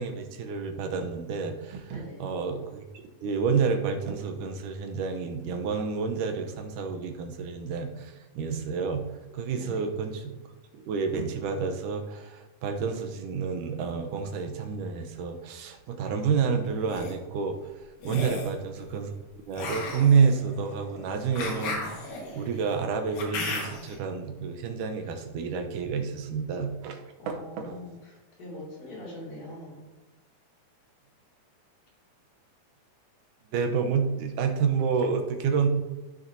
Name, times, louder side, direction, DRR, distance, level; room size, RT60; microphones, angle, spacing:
voice 1, 0.0-2.8 3.2-9.0 9.3-10.3 10.7-17.6 18.0-19.1 19.5-27.0 27.3-27.8 33.5-35.7, right 5 dB, 80° right, 5 dB, 2.4 m, -29 dB
voice 2, 1.9-2.3 9.5-9.9 18.2-18.5 27.2-29.9, left 1 dB, 60° left, -4 dB, 3.6 m, -43 dB
sound 1, 16.7-17.1 18.0-18.6 19.5-24.0, left 2 dB, 85° left, 3.2 m, -35 dB
14.5 x 6.3 x 2.7 m, 1.1 s
omnidirectional pair, 3.6 m